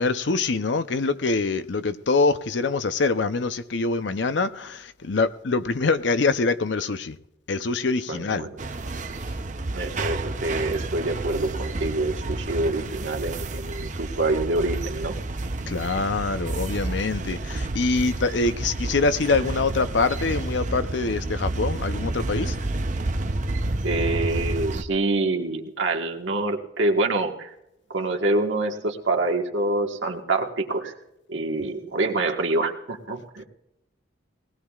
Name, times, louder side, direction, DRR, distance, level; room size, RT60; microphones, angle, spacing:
voice 1, 0.0-7.2 7.5-8.5 15.7-22.6, left 3 dB, 75° left, 0.6 m, -24 dB
voice 2, 8.1-8.5 9.7-15.2 23.8-27.5 27.9-30.9 31.3-33.4, right 2 dB, 80° right, 1.6 m, -26 dB
sound 1, 8.6-24.8, right 2 dB, 40° right, 0.7 m, -30 dB
20.5 x 18.0 x 2.4 m
head